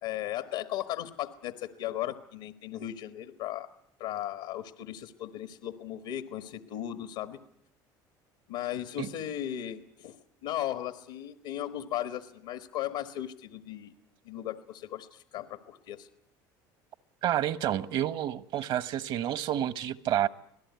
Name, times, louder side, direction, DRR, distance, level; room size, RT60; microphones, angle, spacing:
voice 1, 0.0-3.7 4.0-7.4 8.5-10.2 10.4-13.9 14.2-16.1, left 12 dB, 85° left, 1.4 m, -36 dB
voice 2, 17.2-20.3, right 11 dB, 60° right, 1.2 m, -29 dB
25.5 x 17.5 x 9.5 m
supercardioid pair, 95°, 9 cm